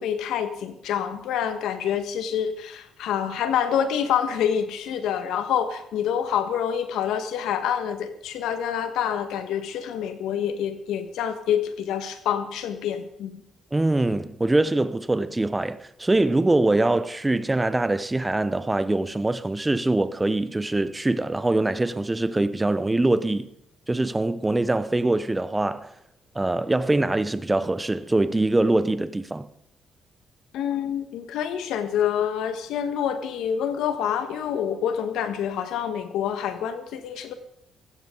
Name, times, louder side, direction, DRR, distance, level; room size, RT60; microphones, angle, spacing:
voice 1, 0.0-13.4 30.5-37.3, left 8 dB, 85° left, 1.5 m, -27 dB
voice 2, 13.7-23.5 23.9-25.9 26.3-29.5, right 2 dB, 15° right, 0.8 m, -23 dB
16.0 x 15.0 x 3.9 m
cardioid pair, 90°, 0 cm